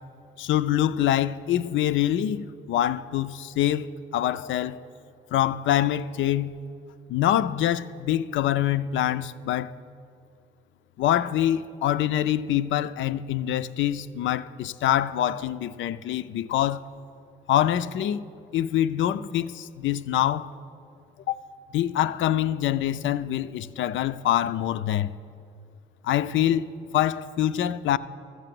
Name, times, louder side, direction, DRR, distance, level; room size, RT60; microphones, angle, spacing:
voice 1, 0.4-4.8 5.3-6.5 7.1-9.7 11.0-16.9 17.5-18.2 18.5-20.5 21.3-21.4 21.7-25.1 26.0-28.0, left 11 dB, 75° left, 0.5 m, -25 dB
13.0 x 8.0 x 7.5 m
cardioid pair, 90°, 20 cm